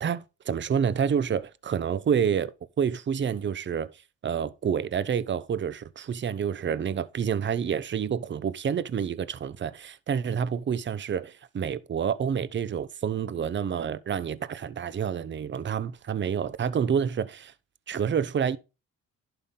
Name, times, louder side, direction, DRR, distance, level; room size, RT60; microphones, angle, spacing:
voice 1, 0.0-3.9 4.2-17.5 17.9-18.6, right 7 dB, 40° right, 0.7 m, -28 dB
11.0 x 5.7 x 3.8 m
cardioid pair, 90°, 30 cm